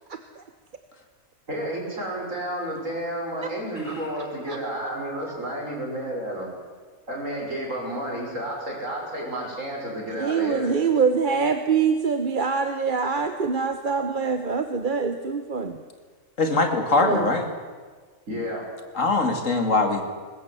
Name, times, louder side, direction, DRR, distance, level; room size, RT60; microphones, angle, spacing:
voice 1, 0.1-0.4 4.5-4.6 5.3-5.4 10.2-15.8 17.0-17.3, right 5 dB, 40° right, 8 dB, 1.1 m, -24 dB
voice 2, 1.5-6.5 7.1-10.7 18.3-18.6, right 1 dB, 60° right, -1 dB, 6.6 m, -31 dB
voice 3, 16.4-17.5 18.9-20.1, left 3 dB, 60° left, 6 dB, 2.8 m, -22 dB
22.0 x 19.5 x 8.3 m, 1.5 s
omnidirectional pair, 1.5 m